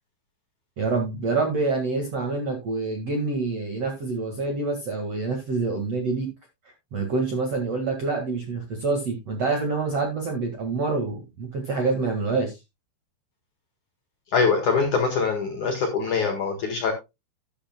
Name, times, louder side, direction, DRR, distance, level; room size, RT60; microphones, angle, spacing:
voice 1, 0.8-6.3 6.9-12.6, right 3 dB, 50° right, 3 dB, 2.0 m, -26 dB
voice 2, 14.3-16.9, left 5 dB, 55° left, 3 dB, 2.3 m, -23 dB
12.5 x 10.5 x 2.2 m, 0.23 s
omnidirectional pair, 5.5 m